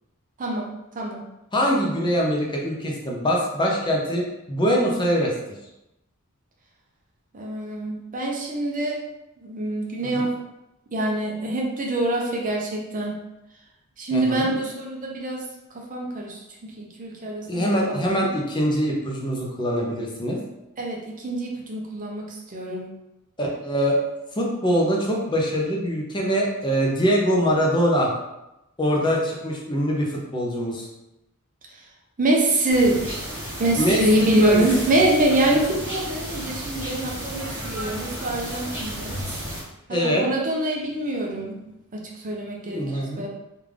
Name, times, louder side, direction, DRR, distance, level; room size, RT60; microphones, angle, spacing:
voice 1, 0.4-1.2 7.3-9.0 9.4-10.3 10.9-13.2 14.0-15.4 15.7-18.0 20.8-22.8 32.2-33.0 33.6-39.2 39.9-41.6 41.9-43.3, right 1 dB, 40° right, -1 dB, 0.6 m, -25 dB
voice 2, 1.5-5.3 10.0-10.3 14.1-14.4 17.5-20.4 23.4-24.0 24.3-28.1 28.8-30.9 33.8-34.6 39.9-40.2 42.7-43.3, equal, 20° left, -2 dB, 0.6 m, -23 dB
sound 1, 32.7-39.6, right 1 dB, 10° right, 1.1 m, -33 dB
3.5 x 2.4 x 3.2 m, 0.92 s
head